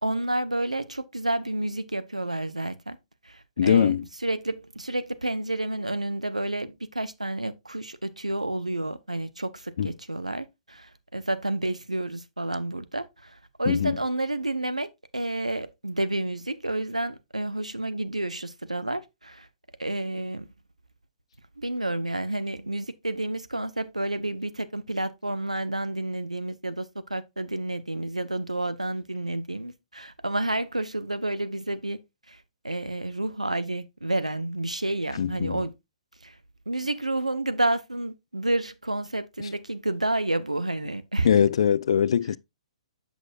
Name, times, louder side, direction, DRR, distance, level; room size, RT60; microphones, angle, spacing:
voice 1, 0.0-3.0 3.2-4.0 4.2-19.5 19.8-20.5 21.6-32.0 32.3-35.7 36.2-36.3 36.7-41.3, right 2 dB, 90° right, 0.6 m, -30 dB
voice 2, 3.6-4.0 9.8-9.9 13.7-14.0 35.2-35.6 41.2-42.4, left 8 dB, 60° left, 0.3 m, -22 dB
7.9 x 6.0 x 2.5 m
figure-of-eight pair, 120°, 4 cm